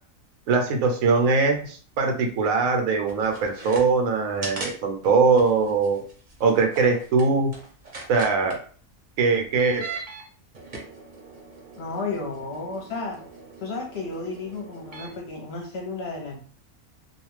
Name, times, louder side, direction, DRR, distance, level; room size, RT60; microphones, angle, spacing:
voice 1, 0.5-6.0 6.4-7.5 8.1-8.6 9.2-9.8, right 4 dB, 80° right, 4 dB, 1.0 m, -21 dB
sound 1, 3.1-3.8 4.4-4.7 5.0-5.1 5.4-8.5 9.4-10.2 10.5-15.2, right 3 dB, 45° right, 0.7 m, -40 dB
voice 2, 11.8-13.2 13.6-16.4, left 3 dB, 55° left, 0 dB, 0.9 m, -33 dB
2.4 x 2.2 x 3.1 m, 0.43 s
omnidirectional pair, 1.4 m